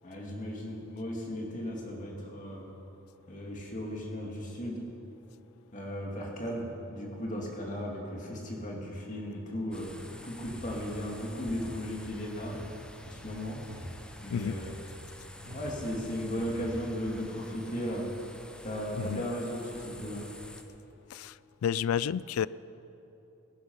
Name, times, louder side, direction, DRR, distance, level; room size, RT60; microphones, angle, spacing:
voice 1, 0.0-2.7 3.3-4.8 5.7-12.6 13.1-13.6 14.2-14.7 15.5-18.1 18.6-20.2, equal, 35° left, -1 dB, 2.3 m, -36 dB
sound 1, 9.7-20.6, left 1 dB, 5° left, 0.7 m, -50 dB
sound 2, 10.3-10.7 11.4-11.7 12.4-12.7 13.6-13.9 14.3-14.7 15.4-15.7 16.3-16.7, right 1 dB, 75° right, 3.3 m, -46 dB
voice 2, 21.1-22.5, left 8 dB, 75° left, 19 dB, 0.3 m, -31 dB
18.5 x 10.5 x 5.6 m, 3.0 s
head